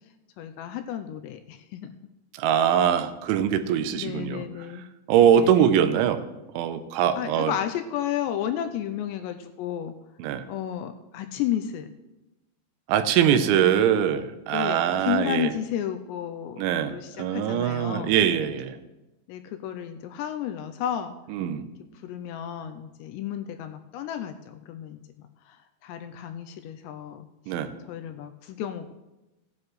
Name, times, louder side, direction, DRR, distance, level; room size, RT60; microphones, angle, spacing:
voice 1, 0.4-1.9 4.0-4.8 5.3-6.0 7.1-9.9 10.5-11.9 13.3-13.7 14.5-16.6 16.9-18.2 19.3-21.2 22.0-25.6 25.8-27.3 27.9-28.9, left 10 dB, 85° left, 7 dB, 2.6 m, -32 dB
voice 2, 2.4-4.4 5.1-6.2 6.5-7.5 10.2-10.5 12.9-15.5 16.6-18.8 21.3-21.6 27.5-27.7, right 9 dB, 85° right, 10 dB, 3.1 m, -22 dB
17.0 x 9.6 x 3.1 m, 1.0 s
omnidirectional pair, 5.4 m